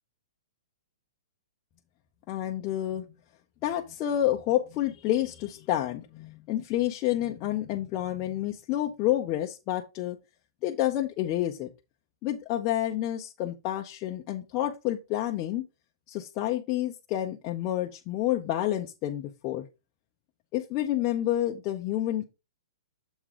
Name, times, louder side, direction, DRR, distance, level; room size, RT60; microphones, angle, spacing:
voice 1, 2.3-3.0 3.6-10.2 10.6-11.7 12.2-15.6 16.1-19.7 20.5-22.2, left 13 dB, 25° left, 0.6 m, -29 dB
7.2 x 3.7 x 4.9 m
hypercardioid pair, 160°, 3 cm